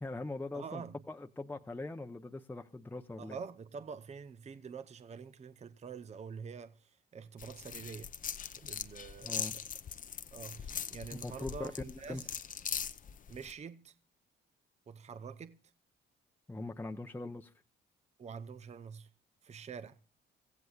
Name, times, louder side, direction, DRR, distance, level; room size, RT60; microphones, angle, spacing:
voice 1, 0.0-3.4 9.2-9.6 11.2-12.2 16.5-17.5, left 2 dB, 10° left, 0.8 m, -41 dB
voice 2, 0.5-1.0 3.2-8.1 8.5-9.6 10.3-12.3 13.3-13.9 14.9-15.6 18.2-19.1 19.4-20.0, right 6 dB, 35° right, 0.7 m, -46 dB
sound 1, 7.4-13.5, left 7 dB, 45° left, 0.7 m, -41 dB
24.5 x 15.5 x 2.4 m
cardioid pair, 90°, 20 cm